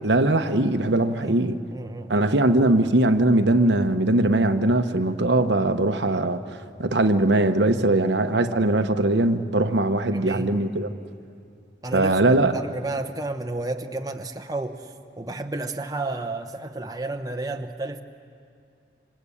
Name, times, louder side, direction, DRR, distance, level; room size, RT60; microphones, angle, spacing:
voice 1, 0.0-1.6 2.1-6.4 6.8-10.9 11.9-12.5, right 2 dB, 80° right, 7 dB, 1.1 m, -21 dB
voice 2, 1.7-2.3 10.1-10.6 11.8-14.9 15.2-18.0, right 2 dB, 20° right, 5 dB, 1.0 m, -32 dB
27.0 x 26.0 x 8.5 m, 2.4 s
head